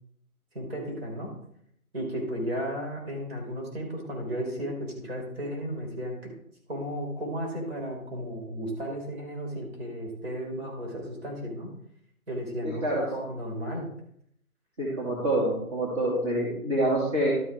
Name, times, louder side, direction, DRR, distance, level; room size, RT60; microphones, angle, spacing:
voice 1, 0.5-1.3 1.9-6.3 6.7-11.7 12.3-12.8 13.3-13.9, equal, 45° right, 1 dB, 4.2 m, -34 dB
voice 2, 12.6-13.3 14.8-17.3, right 1 dB, 20° right, -6 dB, 2.6 m, -27 dB
12.5 x 7.5 x 3.7 m, 0.70 s
hypercardioid pair, 165°, 44 cm